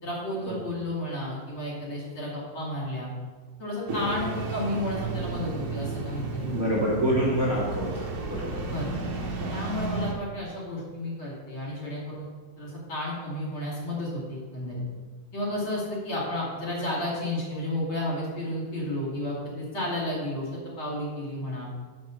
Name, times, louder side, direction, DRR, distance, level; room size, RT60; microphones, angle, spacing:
voice 1, 0.0-3.1 3.6-6.8 8.6-9.1 9.5-12.3 12.6-14.8 15.3-21.7, left 1 dB, 40° left, -5 dB, 3.1 m, -32 dB
Engine starting, 3.9-10.1, right 3 dB, 55° right, 1.9 m, -33 dB
voice 2, 6.5-8.6 9.4-9.6, right 1 dB, 35° right, -5 dB, 1.5 m, -27 dB
9.4 x 5.5 x 6.5 m, 1.4 s
omnidirectional pair, 4.0 m